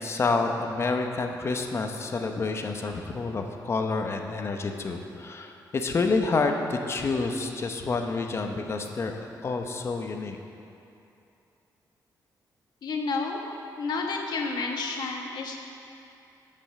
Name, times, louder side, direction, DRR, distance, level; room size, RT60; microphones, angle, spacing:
voice 1, 0.0-10.4, left 3 dB, 35° left, 4 dB, 0.8 m, -28 dB
voice 2, 12.8-13.4 13.8-15.7, left 4 dB, 65° left, 1 dB, 1.3 m, -30 dB
12.0 x 5.4 x 7.6 m, 2.7 s
wide cardioid pair, 150°, 8 cm